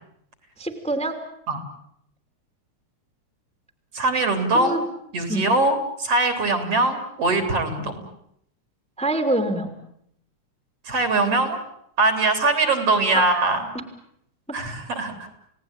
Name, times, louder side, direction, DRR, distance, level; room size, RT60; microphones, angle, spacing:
voice 1, 0.6-1.2 4.5-4.8 5.3-5.5 9.0-9.7 13.1-13.3 13.7-13.8, right 2 dB, ahead, 7 dB, 2.6 m, -25 dB
voice 2, 3.9-4.8 5.1-7.9 10.9-11.6 12.0-13.6 14.5-15.1, right 2 dB, 50° right, 8 dB, 4.5 m, -22 dB
30.0 x 18.5 x 9.0 m, 0.73 s
omnidirectional pair, 3.3 m